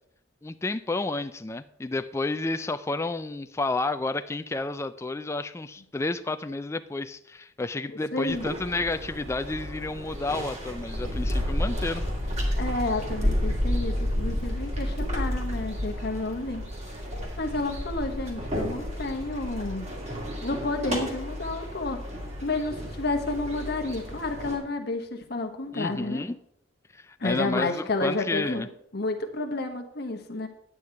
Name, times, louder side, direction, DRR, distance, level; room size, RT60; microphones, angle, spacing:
voice 1, 0.4-12.0 25.7-26.4 26.9-28.7, left 2 dB, 15° left, 10 dB, 0.3 m, -31 dB
voice 2, 7.9-8.5 12.6-16.7 17.4-19.9 20.4-22.0 22.4-26.2 27.2-28.7 28.9-30.5, left 2 dB, 55° left, 4 dB, 1.1 m, -30 dB
sound 1, 8.3-24.6, equal, 35° right, 2.2 m, -31 dB
10.0 x 8.7 x 4.6 m, 0.70 s
head